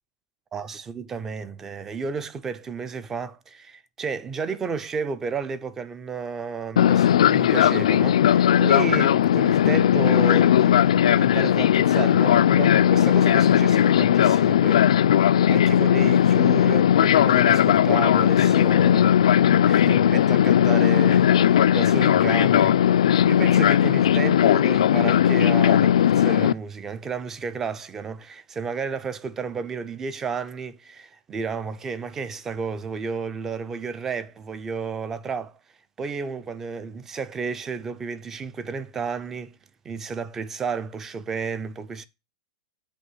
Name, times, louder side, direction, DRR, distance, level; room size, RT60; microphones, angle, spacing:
voice 1, 0.5-19.2 19.7-35.5 36.0-39.6 39.8-42.1, right 5 dB, 10° right, 0.4 m, -32 dB
Fixed-wing aircraft airplane, 6.8-26.5, left 10 dB, 85° left, 0.3 m, -18 dB
8.3 x 3.0 x 5.5 m
supercardioid pair, 170°, 3 cm